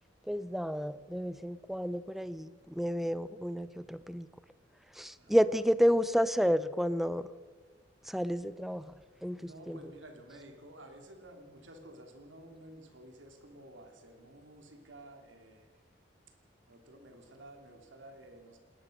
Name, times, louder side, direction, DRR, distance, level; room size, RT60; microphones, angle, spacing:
voice 1, 0.3-4.3 4.9-7.3 8.0-9.8, equal, ahead, 15 dB, 0.6 m, -31 dB
voice 2, 5.2-5.6 9.4-15.8 16.3-16.4 16.7-18.6, right 1 dB, 85° right, 4 dB, 3.0 m, -52 dB
20.0 x 19.5 x 6.6 m, 1.5 s
head